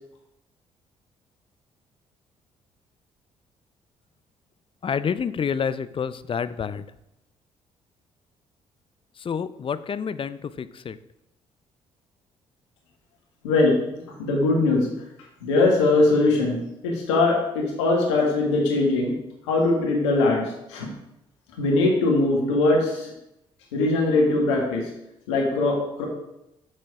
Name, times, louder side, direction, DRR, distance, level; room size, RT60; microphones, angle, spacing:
voice 1, 4.8-6.9 9.2-11.0, left 7 dB, 40° left, 15 dB, 0.5 m, -28 dB
voice 2, 13.4-13.8 14.1-15.0 15.4-19.1 19.5-20.9 21.6-23.1 23.7-24.9 25.3-26.0, left 2 dB, 90° left, 0 dB, 1.6 m, -21 dB
6.5 x 6.3 x 4.8 m, 0.87 s
hypercardioid pair, 50°, 14 cm